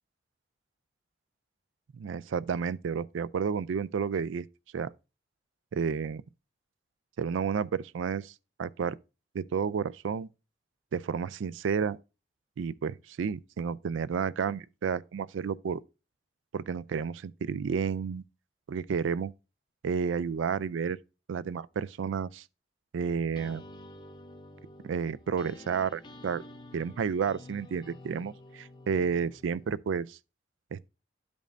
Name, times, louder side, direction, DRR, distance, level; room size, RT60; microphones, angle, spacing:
voice 1, 1.9-4.5 4.7-4.9 5.7-6.2 7.2-8.3 8.6-9.0 9.3-10.3 10.9-12.0 12.6-15.8 16.5-18.2 18.7-19.3 19.8-21.0 21.3-22.4 22.9-23.6 24.8-26.4 26.7-30.2 30.7-30.9, right 6 dB, 90° right, 0.4 m, -31 dB
sound 1, 23.0-29.8, left 1 dB, 25° left, 0.6 m, -50 dB
12.0 x 5.2 x 2.6 m
head